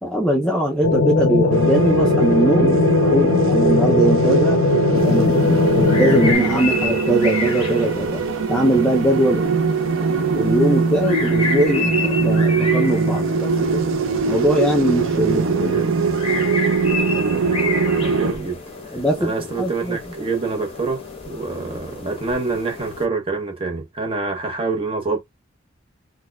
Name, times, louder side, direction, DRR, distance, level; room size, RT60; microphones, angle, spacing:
voice 1, 0.0-4.6 4.9-8.2 8.5-9.5 10.3-13.8 14.3-15.8 18.9-20.0, right 1 dB, 5° left, 0.5 m, -21 dB
sound 1, 0.8-6.3, left 3 dB, 70° left, 0.4 m, -18 dB
sound 2, 1.5-18.3, right 4 dB, 75° right, 0.5 m, -21 dB
sound 3, 5.0-23.1, left 3 dB, 30° left, 0.9 m, -31 dB
voice 2, 15.7-16.1 18.1-18.6 19.2-25.2, right 4 dB, 25° right, 0.8 m, -26 dB
4.1 x 2.2 x 2.3 m
head